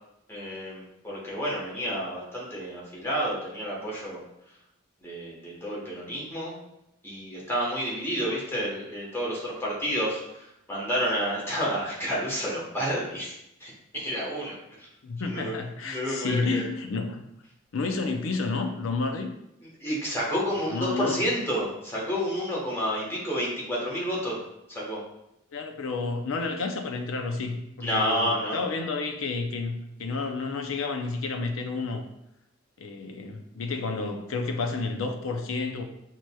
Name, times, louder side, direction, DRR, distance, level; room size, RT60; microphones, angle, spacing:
voice 1, 0.3-4.2 5.0-6.5 7.0-13.3 13.6-14.9 15.2-15.6 15.8-16.7 19.8-24.4 24.7-25.0 27.8-28.6, equal, 10° left, -6 dB, 1.1 m, -30 dB
voice 2, 15.0-17.2 17.7-19.3 20.7-21.2 25.5-32.0 32.8-35.8, left 3 dB, 90° left, 5 dB, 0.5 m, -30 dB
6.1 x 2.9 x 2.3 m, 0.82 s
head